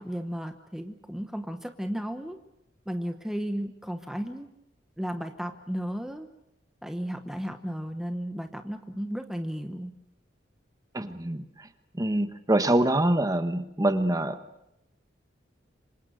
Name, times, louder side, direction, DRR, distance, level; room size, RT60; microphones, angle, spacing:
voice 1, 0.0-2.4 2.9-4.5 5.0-6.3 6.8-9.9, equal, ahead, 6 dB, 1.0 m, -34 dB
voice 2, 10.9-11.7 11.9-14.4, right 1 dB, 20° right, 9 dB, 1.2 m, -25 dB
27.0 x 25.0 x 6.4 m, 0.87 s
head